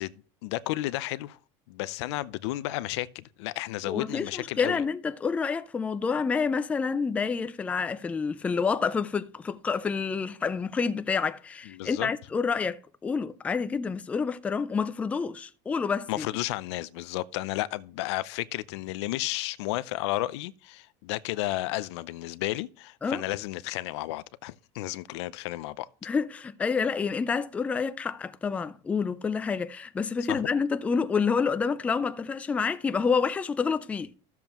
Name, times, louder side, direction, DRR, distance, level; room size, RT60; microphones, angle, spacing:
voice 1, 0.0-1.4 1.7-4.8 11.7-12.1 16.1-25.9 30.3-30.4, left 17 dB, 85° left, 0.5 m, -32 dB
voice 2, 3.8-16.3 23.0-23.2 26.0-34.1, left 5 dB, 10° left, 0.3 m, -28 dB
14.0 x 7.1 x 3.0 m
cardioid pair, 165°, 14 cm